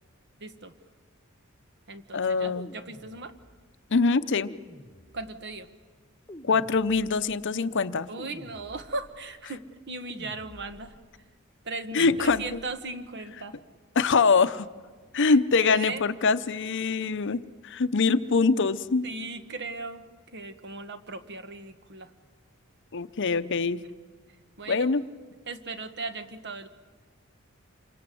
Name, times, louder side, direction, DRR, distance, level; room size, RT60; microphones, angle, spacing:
voice 1, 0.4-0.7 1.9-3.3 5.1-5.7 8.1-11.0 11.6-13.6 15.2-16.0 19.0-20.0 20.3-22.1 24.6-24.9 25.5-26.7, right 3 dB, 55° right, 9 dB, 1.4 m, -37 dB
voice 2, 2.1-2.7 3.9-4.5 6.4-8.1 11.9-12.6 14.0-14.7 15.1-19.0 22.9-23.8 24.7-25.0, left 4 dB, 60° left, 13 dB, 0.7 m, -24 dB
sound 1, 2.4-3.7 4.4-5.5 6.3-7.4 8.2-9.2 10.1-11.0 11.9-12.8, left 1 dB, 15° left, 1.2 m, -49 dB
27.5 x 24.5 x 7.8 m, 1.5 s
head